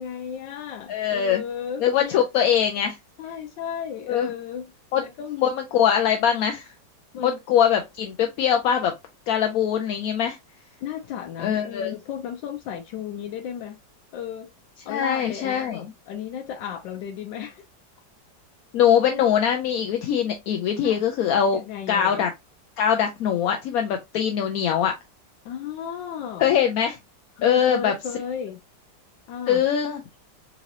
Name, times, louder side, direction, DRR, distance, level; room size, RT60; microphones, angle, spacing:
voice 1, 0.0-2.2 3.2-4.7 5.0-5.5 7.1-7.4 10.8-13.8 14.1-14.5 14.8-17.6 20.8-21.0 21.5-22.2 25.4-26.5 27.4-28.6 29.3-29.6, left 8 dB, 90° left, 1.3 m, -34 dB
voice 2, 0.9-1.4 1.8-3.0 4.1-4.3 4.9-5.0 5.4-6.7 7.2-8.9 9.3-10.4 11.4-12.0 14.9-15.9 18.7-21.6 21.9-22.3 22.8-24.9 26.4-27.0 27.4-27.9 29.5-30.0, left 9 dB, 75° left, 0.8 m, -22 dB
3.9 x 2.9 x 2.6 m
omnidirectional pair, 1.9 m